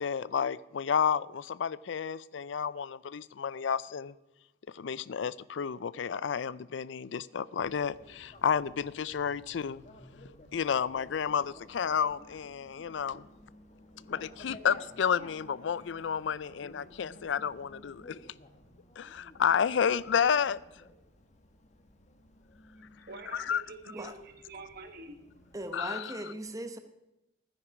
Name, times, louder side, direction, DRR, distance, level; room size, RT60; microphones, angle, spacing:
voice 1, 0.0-4.2 4.7-9.8 10.5-13.3 14.1-18.2 19.0-20.6 23.5-23.6 25.7-26.0, left 7 dB, 70° left, 0.4 m, -31 dB
Bicycle, 7.6-25.8, left 1 dB, 40° left, 1.3 m, -54 dB
voice 2, 22.7-25.5, right 3 dB, 55° right, 1.4 m, -47 dB
voice 3, 25.5-26.8, right 1 dB, 20° right, 0.9 m, -39 dB
13.0 x 9.8 x 6.0 m
head